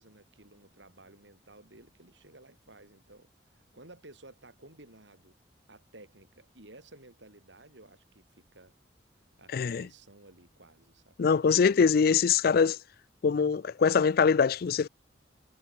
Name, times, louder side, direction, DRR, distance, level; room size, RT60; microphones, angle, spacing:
voice 1, 0.0-5.4 5.7-8.8 9.4-11.3, right 2 dB, 80° right, 6.0 m, -55 dB
voice 2, 9.5-9.8 11.2-12.8 13.2-14.9, left 6 dB, 55° left, 0.4 m, -23 dB
head